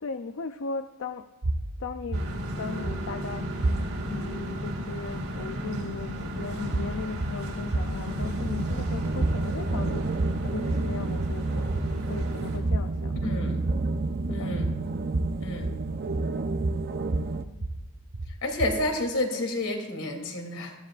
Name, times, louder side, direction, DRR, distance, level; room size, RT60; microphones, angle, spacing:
voice 1, 0.0-1.3 1.8-2.2 2.6-3.6 4.1-13.2 14.3-14.6 17.0-17.6, left 5 dB, 60° left, 9 dB, 0.5 m, -38 dB
sound 1, 1.4-4.2 6.6-19.0, right 2 dB, 75° right, 0.9 m, -32 dB
sound 2, 2.1-12.6, equal, 90° right, 4.0 m, -34 dB
sound 3, 8.2-17.4, right 3 dB, 45° right, 0.5 m, -31 dB
voice 2, 13.2-13.6 14.3-14.7 15.4-15.7 18.4-20.7, left 1 dB, 80° left, 2 dB, 3.0 m, -30 dB
21.5 x 14.5 x 2.5 m, 1.1 s
head